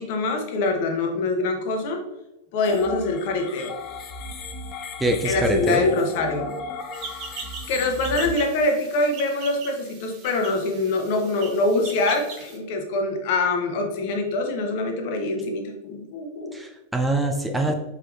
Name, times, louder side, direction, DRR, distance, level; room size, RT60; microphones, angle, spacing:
voice 1, 0.0-2.0 2.5-3.7 5.2-6.5 7.7-16.6, left 2 dB, 50° left, 4 dB, 0.9 m, -24 dB
sound 1, 2.6-8.3, left 3 dB, 35° left, 0.6 m, -35 dB
voice 2, 5.0-5.8 16.5-17.7, right 1 dB, 5° right, 3 dB, 0.6 m, -24 dB
sound 2, 6.9-12.6, right 5 dB, 45° right, 0.9 m, -40 dB
4.8 x 4.5 x 2.4 m, 0.93 s
figure-of-eight pair, 90°, 0 cm